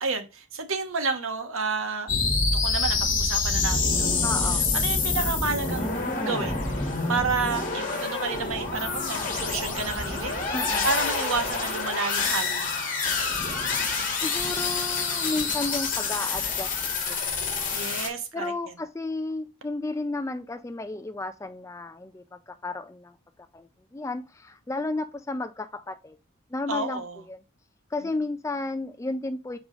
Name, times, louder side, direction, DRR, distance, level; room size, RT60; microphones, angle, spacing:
voice 1, 0.0-2.1 2.5-5.9 6.2-10.6 10.8-12.9 17.7-18.7 26.7-27.2, right 4 dB, 75° right, 1.1 m, -31 dB
sound 1, 2.1-18.1, left 4 dB, 40° left, 1.7 m, -27 dB
voice 2, 4.2-4.6 10.5-10.9 14.2-16.7 17.1-17.2 18.3-23.1 23.5-26.2 26.5-27.0 27.3-27.4 27.9-29.6, left 2 dB, 15° left, 0.3 m, -32 dB
6.2 x 4.8 x 3.8 m
head